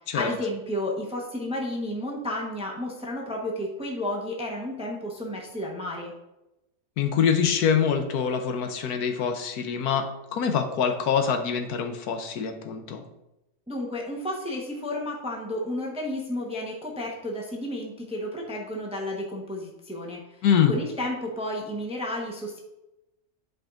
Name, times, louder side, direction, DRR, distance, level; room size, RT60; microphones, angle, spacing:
voice 1, 0.1-6.1 13.7-20.2 20.7-22.6, left 1 dB, 5° right, -1 dB, 0.7 m, -32 dB
voice 2, 7.0-13.0 20.4-20.7, left 7 dB, 80° left, 6 dB, 1.2 m, -25 dB
8.6 x 5.2 x 2.5 m, 0.92 s
omnidirectional pair, 1.6 m